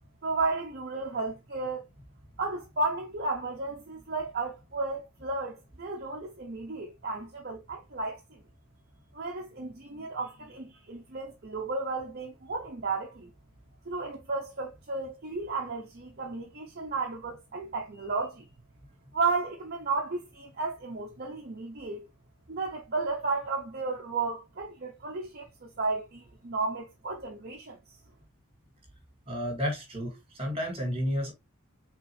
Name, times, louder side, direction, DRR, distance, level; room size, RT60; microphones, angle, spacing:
voice 1, 0.2-1.8 2.4-8.4 9.1-13.3 13.9-18.4 19.1-22.0 22.5-27.8, right 3 dB, 45° right, 0.7 m, -33 dB
voice 2, 29.3-31.3, equal, 25° right, 1.8 m, -31 dB
4.4 x 3.8 x 3.1 m
head